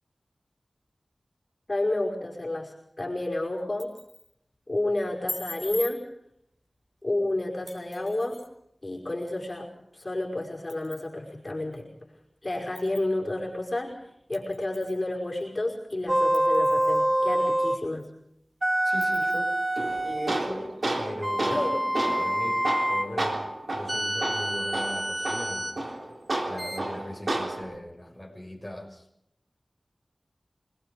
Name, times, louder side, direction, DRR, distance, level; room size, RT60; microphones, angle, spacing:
voice 1, 1.7-3.9 4.7-6.1 7.0-8.5 8.8-11.9 12.4-18.1 21.5-21.9, left 2 dB, 40° left, -1 dB, 5.3 m, -30 dB
sound 1, 3.6-4.3 5.3-6.0 7.7-8.5 10.0-10.1 10.7-11.1 11.7-11.8 12.7-13.1 14.3-15.0 15.4-15.5 16.3-17.0 17.5-17.6 18.0-18.1 19.0-19.4, equal, 10° right, 6.2 m, -40 dB
sound 2, 16.1-17.9 18.6-20.5 21.2-23.1 23.9-25.8 26.6-26.8, right 1 dB, 25° right, 2.2 m, -26 dB
voice 2, 18.8-19.6 20.0-21.7 22.0-23.5 23.7-25.8 26.5-29.0, equal, 10° left, 0 dB, 6.4 m, -39 dB
Tools, 19.8-27.8, right 2 dB, 70° right, 3.8 m, -32 dB
26.5 x 21.5 x 5.2 m, 0.75 s
wide cardioid pair, 65°, 0 cm